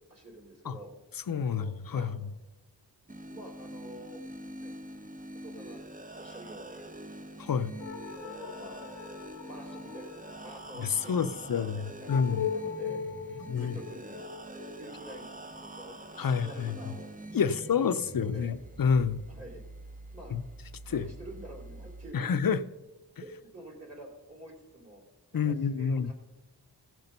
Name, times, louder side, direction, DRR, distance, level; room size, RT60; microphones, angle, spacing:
voice 1, 0.1-0.9 1.4-2.1 3.2-4.2 4.5-4.7 5.4-5.8 6.1-6.9 7.7-8.9 9.4-14.2 14.8-17.1 17.4-18.5 19.3-19.6 20.1-20.4 20.9-22.3 23.2-25.0 25.3-26.1, right 1 dB, 35° right, -3 dB, 3.5 m, -48 dB
voice 2, 1.3-2.2 7.4-7.7 10.8-12.5 13.5-13.7 16.2-16.8 17.3-19.2 20.3-20.4 20.9-21.1 22.1-22.6 25.3-26.1, left 6 dB, 55° left, 13 dB, 0.7 m, -28 dB
sound 1, 3.1-22.1, right 2 dB, 20° right, 0.8 m, -45 dB
sound 2, 7.8-16.6, left 7 dB, 90° left, 0.9 m, -41 dB
16.5 x 6.0 x 5.3 m, 1.1 s
wide cardioid pair, 55°, 42 cm